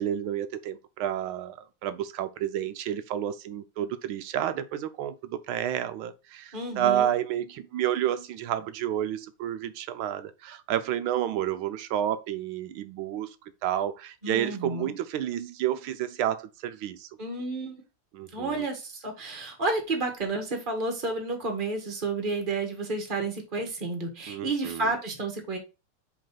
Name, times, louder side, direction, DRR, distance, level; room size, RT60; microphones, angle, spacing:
voice 1, 0.0-13.3 13.6-17.1 18.1-18.6 24.3-24.9, right 11 dB, 75° right, 1.3 m, -30 dB
voice 2, 6.5-7.1 14.2-14.9 17.2-17.8 18.3-25.6, right 3 dB, 25° right, 1.6 m, -31 dB
5.2 x 3.7 x 5.7 m
omnidirectional pair, 2.4 m